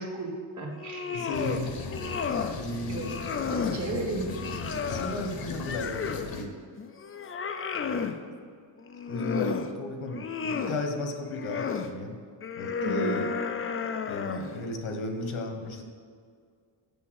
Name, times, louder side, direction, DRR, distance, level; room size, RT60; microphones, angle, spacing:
voice 1, 0.0-1.3 2.9-3.2 3.5-4.3 12.8-13.2, right 1 dB, 40° right, 1 dB, 1.4 m, -33 dB
sound 1, 0.7-1.6 1.9-2.6 3.0-3.8 4.3-6.3 6.8-8.2 8.8-9.7 10.1-10.8 11.3-11.9 12.4-14.6, left 6 dB, 30° left, 0.4 m, -32 dB
voice 2, 1.1-1.9 2.5-3.1 4.9-6.5 9.1-12.2 12.6-13.3 14.1-15.8, left 2 dB, 80° left, 4 dB, 1.4 m, -34 dB
sound 2, 1.3-6.4, left 3 dB, 45° left, 0.9 m, -38 dB
7.1 x 7.1 x 6.4 m, 2.1 s
wide cardioid pair, 180°, 48 cm